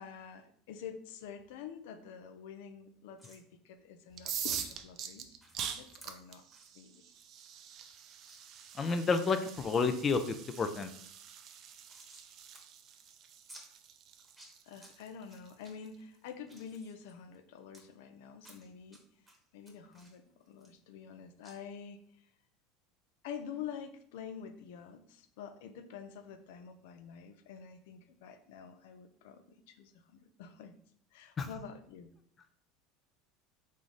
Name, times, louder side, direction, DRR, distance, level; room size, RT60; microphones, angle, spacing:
voice 1, 0.0-5.4 5.6-6.4 6.7-7.1 14.7-19.0 19.5-20.2 20.5-22.3 23.2-30.7 31.1-32.1, left 7 dB, 75° left, 8 dB, 0.5 m, -47 dB
sound 1, 3.2-3.4 4.5-4.6 5.4-5.6 6.0-6.1 6.5-6.7 7.1-7.2 7.5-7.6 8.3-8.4 8.9-9.4 9.9-10.2 10.5-10.6 10.9-12.3 12.5-12.6 12.9-13.0 13.5-13.6 14.2-14.9 15.3-15.7 16.2-17.8 18.4-19.0 19.3-21.1 21.4-21.6, right 1 dB, 10° right, 1.1 m, -56 dB
sound 2, 4.1-15.9, right 8 dB, 45° right, 0.4 m, -44 dB
voice 2, 8.7-10.9 31.4-31.5, left 4 dB, 30° left, 9 dB, 0.4 m, -30 dB
3.7 x 3.1 x 4.0 m, 0.64 s
supercardioid pair, 125°, 0 cm